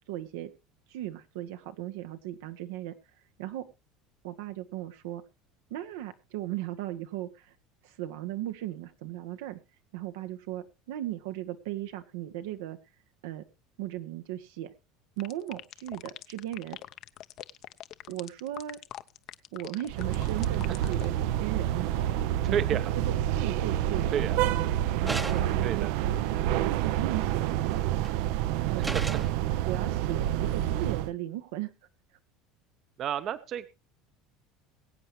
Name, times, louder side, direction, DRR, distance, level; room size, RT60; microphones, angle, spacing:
voice 1, 0.1-0.5 0.9-2.9 3.4-3.6 4.2-5.2 5.7-7.5 7.8-9.6 9.9-12.8 13.2-13.4 13.8-14.7 15.2-16.8 18.1-18.8 19.5-21.1 21.4-22.6 22.9-24.6 25.0-25.9 26.6-27.8 28.7-29.2 29.6-31.7, right 13 dB, 90° right, 8 dB, 1.4 m, -37 dB
sound 1, 15.2-21.1, left 13 dB, 45° left, 0.7 m, -43 dB
sound 2, 19.9-31.1, right 12 dB, 70° right, 0.7 m, -28 dB
voice 2, 22.5-22.9 24.1-24.4 25.6-25.9 28.9-29.0 33.0-33.7, right 9 dB, 40° right, 13 dB, 0.8 m, -30 dB
sound 3, 25.1-25.7 27.7-28.1 28.8-29.4, right 2 dB, 10° right, 0.8 m, -35 dB
22.0 x 8.4 x 3.2 m, 0.27 s
cardioid pair, 150°, 0 cm